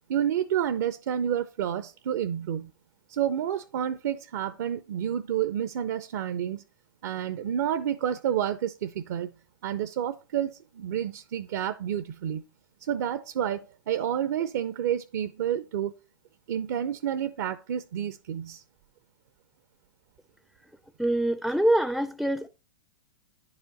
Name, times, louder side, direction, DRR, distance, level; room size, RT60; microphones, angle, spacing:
voice 1, 0.1-2.7 3.1-6.6 7.0-9.3 9.6-12.4 12.8-15.9 16.5-18.6, right 10 dB, 60° right, 0.6 m, -29 dB
voice 2, 21.0-22.5, right 1 dB, ahead, 0.4 m, -24 dB
10.0 x 4.9 x 4.0 m
hypercardioid pair, 110°, 11 cm